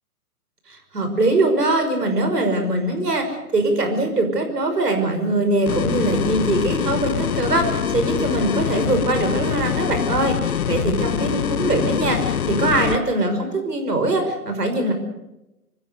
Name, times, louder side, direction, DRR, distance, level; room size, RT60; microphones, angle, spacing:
voice 1, 0.7-14.9, right 2 dB, 80° right, 5 dB, 5.9 m, -22 dB
sound 1, 5.7-13.0, left 8 dB, 65° left, 1.2 m, -24 dB
25.5 x 15.5 x 6.6 m, 0.92 s
figure-of-eight pair, 130°, 47 cm